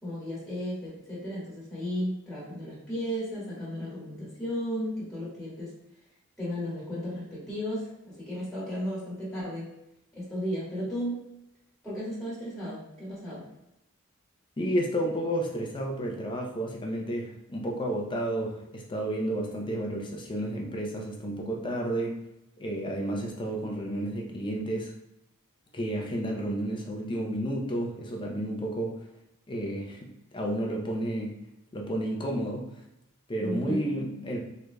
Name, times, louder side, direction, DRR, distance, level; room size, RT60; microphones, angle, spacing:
voice 1, 0.0-5.7 6.4-9.7 10.1-11.2 11.8-13.4 33.4-33.9, equal, ahead, -9 dB, 1.5 m, -34 dB
voice 2, 14.6-22.2 22.6-24.9 25.7-29.0 29.5-31.3 31.7-32.8 33.3-34.4, right 1 dB, 20° left, 0 dB, 0.6 m, -31 dB
3.8 x 3.1 x 2.2 m, 0.86 s
head